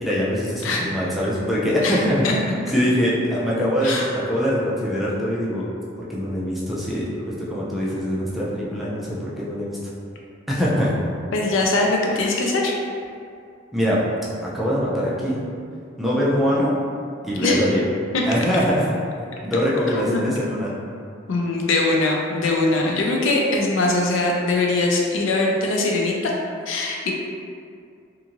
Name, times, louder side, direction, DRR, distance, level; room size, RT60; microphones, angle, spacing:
voice 1, 0.0-2.2 2.7-5.7 6.1-7.1 7.4-9.8 10.5-10.9 13.7-14.0 14.5-15.4 16.0-16.7 17.2-17.8 18.2-18.9 19.4-20.7, equal, ahead, -7 dB, 0.4 m, -23 dB
voice 2, 1.8-2.3 3.8-4.0 11.3-12.7 17.4-17.7 18.1-18.2 19.9-20.2 21.3-26.3 26.7-27.1, left 2 dB, 85° left, -1 dB, 0.4 m, -22 dB
2.5 x 2.5 x 2.9 m, 2.3 s
head